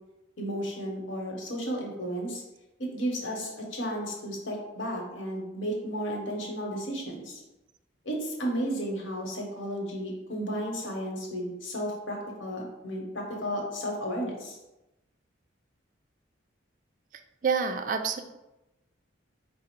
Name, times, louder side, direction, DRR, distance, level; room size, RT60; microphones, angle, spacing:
voice 1, 0.4-2.4 2.8-7.4 8.0-14.6, equal, 75° left, -1 dB, 1.1 m, -33 dB
voice 2, 17.4-18.2, right 6 dB, 40° right, 7 dB, 0.3 m, -27 dB
4.8 x 2.0 x 4.4 m, 0.96 s
head